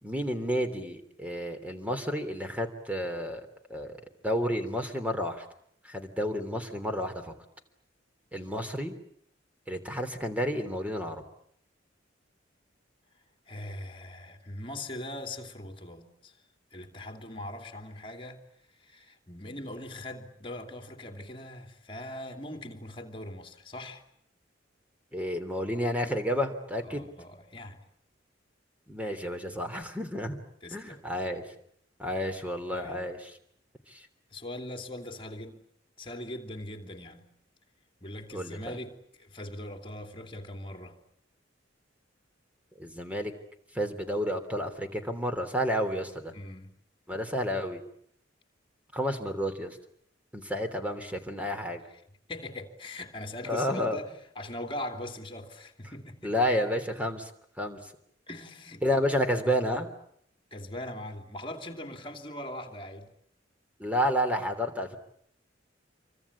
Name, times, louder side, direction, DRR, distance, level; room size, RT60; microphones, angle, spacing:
voice 1, 0.0-4.0 4.2-5.4 5.8-7.1 8.3-8.9 9.7-11.2 25.1-27.1 28.9-30.4 30.7-31.4 32.0-33.2 33.9-34.0 38.3-38.8 42.8-43.3 43.7-46.3 47.1-47.8 48.9-49.8 50.3-51.8 53.4-54.0 56.2-57.3 57.6-57.8 58.8-59.9 63.8-65.0, equal, 10° right, 3.3 m, -30 dB
voice 2, 13.5-16.4 16.7-18.4 18.8-24.0 26.8-27.8 30.6-31.1 32.7-33.1 34.3-35.7 36.0-37.3 38.0-41.0 46.3-46.8 52.3-56.3 58.3-58.8 60.5-63.1, left 1 dB, 30° left, 3.0 m, -41 dB
27.5 x 24.5 x 8.6 m
head